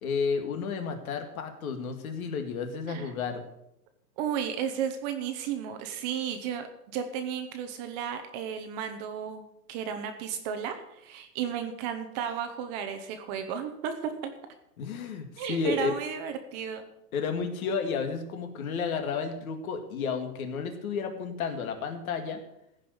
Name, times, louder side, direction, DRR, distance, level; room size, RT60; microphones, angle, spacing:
voice 1, 0.0-3.4 14.8-15.9 17.1-22.4, left 5 dB, 55° left, 6 dB, 2.3 m, -32 dB
voice 2, 4.2-9.4 9.7-14.3 15.4-16.8, right 8 dB, 25° right, 7 dB, 0.9 m, -34 dB
15.5 x 5.5 x 8.0 m, 0.80 s
hypercardioid pair, 150°, 49 cm